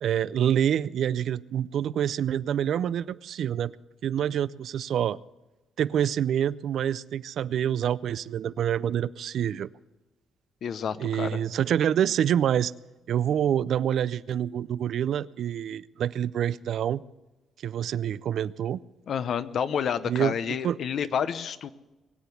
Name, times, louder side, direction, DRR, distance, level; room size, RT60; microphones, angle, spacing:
voice 1, 0.0-3.7 4.0-5.2 5.8-9.7 11.0-12.7 13.1-17.0 17.6-18.8 20.1-20.3 20.6-20.8, right 9 dB, 70° right, 18 dB, 0.4 m, -26 dB
voice 2, 10.6-11.4 19.1-21.7, left 7 dB, 60° left, 13 dB, 0.8 m, -29 dB
21.5 x 7.9 x 7.0 m, 1.1 s
cardioid pair, 90°, 0 cm